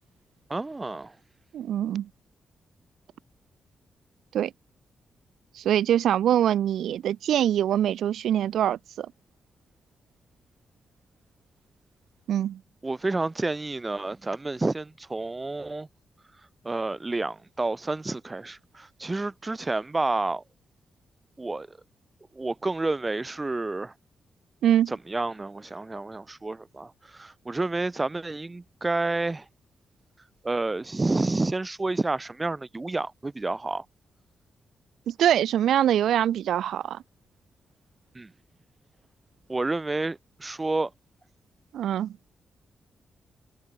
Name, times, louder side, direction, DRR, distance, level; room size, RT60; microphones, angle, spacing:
voice 1, 0.5-1.2 12.8-15.9 16.6-20.4 21.4-21.8 22.3-23.9 24.9-29.5 30.4-33.9 38.1-38.3 39.5-40.9, right 2 dB, 30° right, 3.5 m, -29 dB
voice 2, 1.5-2.1 4.3-4.5 5.6-9.1 12.3-12.6 24.6-24.9 35.1-37.0 41.7-42.1, right 10 dB, 80° right, 0.4 m, -24 dB
supercardioid pair, 45°, 0 cm